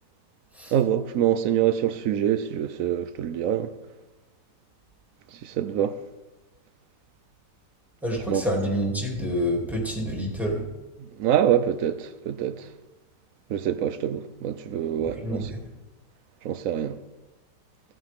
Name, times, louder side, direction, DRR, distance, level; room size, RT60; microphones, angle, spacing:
voice 1, 0.7-3.7 5.3-6.0 8.3-8.4 11.0-12.7 13.5-15.4 16.4-17.0, right 10 dB, 65° right, 0.9 m, -25 dB
voice 2, 8.0-10.6 15.0-15.6, equal, ahead, 2.7 m, -28 dB
17.0 x 8.8 x 3.6 m
omnidirectional pair, 1.8 m